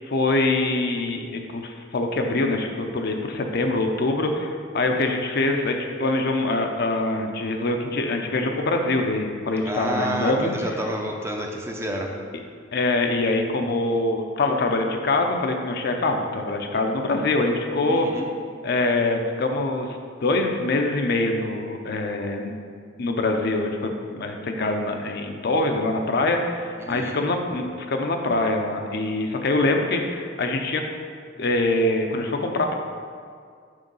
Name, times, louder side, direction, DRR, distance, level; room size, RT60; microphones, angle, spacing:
voice 1, 0.1-10.8 12.7-18.1 18.6-20.0 20.2-22.5 23.0-30.8 31.4-32.7, left 2 dB, 55° left, 3 dB, 0.6 m, -24 dB
voice 2, 9.6-12.1 17.9-18.3 26.8-27.2, equal, 15° right, 1 dB, 0.5 m, -29 dB
6.3 x 3.8 x 5.3 m, 2.1 s
head